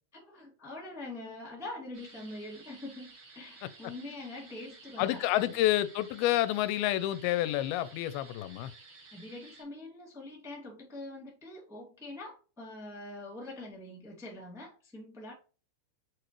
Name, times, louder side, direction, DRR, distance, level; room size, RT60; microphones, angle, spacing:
voice 1, 0.1-5.6 9.1-15.3, left 2 dB, ahead, 0.8 m, -44 dB
sound 1, 1.9-9.6, right 4 dB, 40° right, 2.8 m, -54 dB
voice 2, 5.0-8.7, left 14 dB, 90° left, 2.5 m, -29 dB
6.4 x 5.0 x 3.1 m
omnidirectional pair, 4.3 m